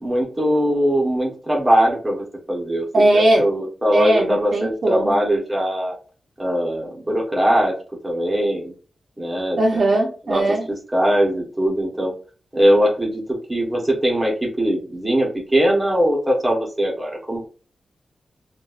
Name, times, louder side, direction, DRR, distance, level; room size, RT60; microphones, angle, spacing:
voice 1, 0.0-5.9 6.4-7.7 8.0-8.7 9.2-9.8 10.3-10.4 10.9-12.1 12.5-13.2 13.5-17.6, equal, 10° right, -1 dB, 0.8 m, -21 dB
voice 2, 2.9-3.4 3.9-5.2 9.6-10.7, right 1 dB, 50° right, 1 dB, 0.6 m, -18 dB
3.9 x 2.3 x 2.3 m, 0.37 s
wide cardioid pair, 175°, 0 cm